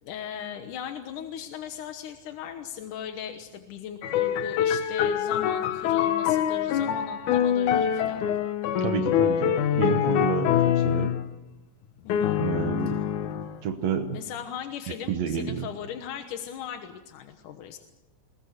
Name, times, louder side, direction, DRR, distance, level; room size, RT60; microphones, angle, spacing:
voice 1, 0.0-8.3 12.0-12.4 14.1-17.8, left 8 dB, 65° left, 6 dB, 2.2 m, -38 dB
sound 1, 4.0-11.2 12.1-13.6, left 9 dB, 85° left, 1.7 m, -25 dB
voice 2, 8.8-11.2 12.4-13.0 13.6-14.2 15.1-15.7, right 7 dB, 85° right, 7 dB, 1.5 m, -30 dB
22.5 x 20.5 x 6.6 m, 1.0 s
omnidirectional pair, 5.0 m